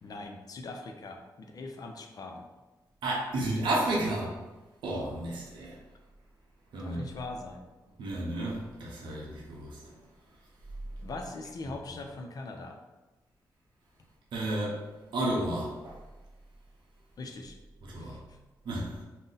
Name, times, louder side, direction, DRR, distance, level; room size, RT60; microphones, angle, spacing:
voice 1, 0.0-2.5 6.8-7.6 11.0-12.8 17.2-17.6 18.0-18.2, left 3 dB, 55° left, 3 dB, 0.4 m, -41 dB
voice 2, 3.0-4.3 4.8-5.8 6.7-7.1 8.0-9.9 14.3-14.8 15.1-16.0 17.9-18.2 18.6-19.0, right 1 dB, 85° right, -4 dB, 0.6 m, -32 dB
2.6 x 2.0 x 3.8 m, 1.1 s
cardioid pair, 75°, 8 cm